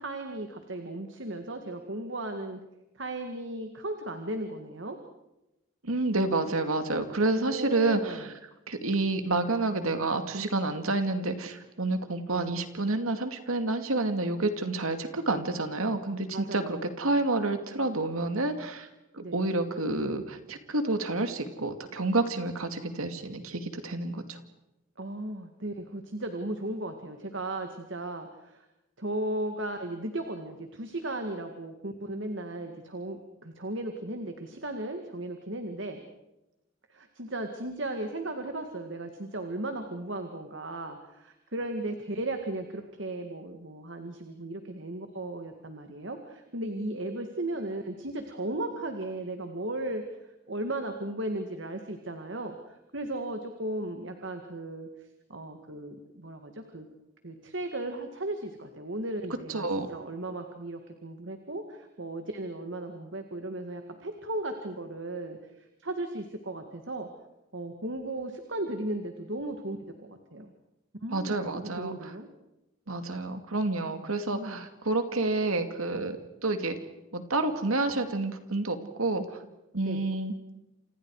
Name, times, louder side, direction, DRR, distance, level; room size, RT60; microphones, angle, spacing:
voice 1, 0.0-2.6 3.0-5.0 7.4-8.3 12.3-12.5 16.3-16.8 19.2-19.4 25.0-28.6 29.0-36.0 36.9-50.0 50.5-54.9 55.3-56.9 57.2-67.1 67.5-70.5 71.0-72.3 74.3-74.7 79.8-80.1, right 1 dB, 60° right, 5 dB, 2.1 m, -36 dB
voice 2, 5.8-8.3 8.7-18.9 19.1-24.4 59.5-59.9 71.1-72.1 72.9-76.2 76.4-76.7 77.1-79.4 79.7-80.3, right 2 dB, 90° right, 7 dB, 2.4 m, -29 dB
29.0 x 28.0 x 4.9 m, 0.92 s
head